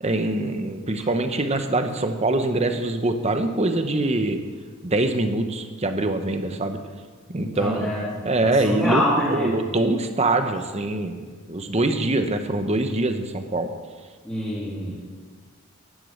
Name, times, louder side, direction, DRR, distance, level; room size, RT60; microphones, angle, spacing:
voice 1, 0.0-4.4 4.8-6.8 7.3-13.7, right 2 dB, 30° right, 7 dB, 1.0 m, -24 dB
voice 2, 7.4-9.6 14.2-15.1, left 1 dB, 5° left, -10 dB, 2.6 m, -26 dB
11.5 x 11.5 x 6.6 m, 1.5 s
head